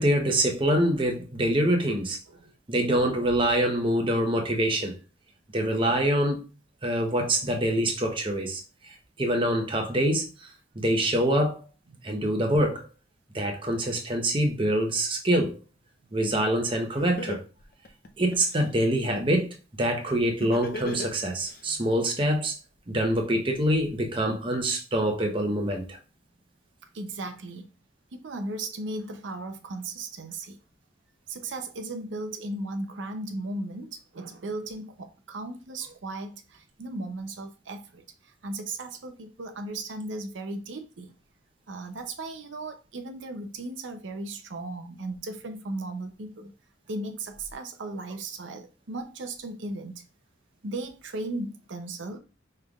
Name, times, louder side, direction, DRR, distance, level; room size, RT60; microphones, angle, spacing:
voice 1, 0.0-2.2 2.7-4.9 5.5-6.4 6.8-8.6 8.9-10.5 10.7-11.6 12.0-12.9 13.3-15.5 16.1-17.4 18.2-19.5 19.8-22.5 22.9-26.0, right 1 dB, 30° right, 0.8 m, -25 dB
Laughter, 16.7-16.8 17.2-18.6 20.4-21.6, left 1 dB, 50° left, 0.6 m, -35 dB
voice 2, 26.9-27.7 28.1-30.6 31.3-41.1 41.7-46.5 46.9-50.0 50.6-52.2, right 2 dB, 85° right, 0.6 m, -36 dB
5.4 x 3.3 x 2.4 m
head